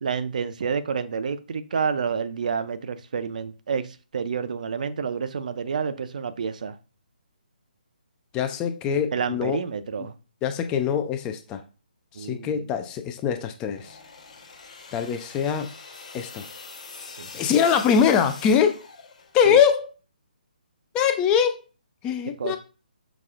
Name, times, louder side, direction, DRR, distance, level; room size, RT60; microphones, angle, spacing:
voice 1, 0.0-6.8 9.1-10.1 12.1-12.7 17.2-17.3 19.5-19.6 22.4-22.6, right 6 dB, 55° right, 0.4 m, -29 dB
voice 2, 8.3-9.6 10.4-11.6 12.2-14.0 14.9-15.7 16.1-16.5 17.3-18.8 19.3-19.9 20.9-21.6 22.0-22.6, left 7 dB, 15° left, 0.3 m, -22 dB
sound 1, 13.7-19.5, left 4 dB, 45° left, 0.9 m, -43 dB
5.9 x 2.3 x 2.4 m
figure-of-eight pair, 140°, 5 cm